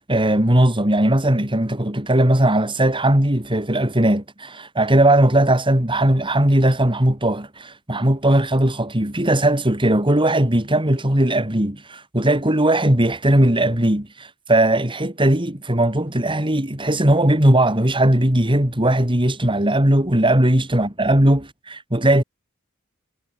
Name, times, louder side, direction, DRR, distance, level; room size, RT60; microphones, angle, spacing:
voice 1, 0.0-22.2, right 1 dB, 25° right, 3.7 m, -18 dB
head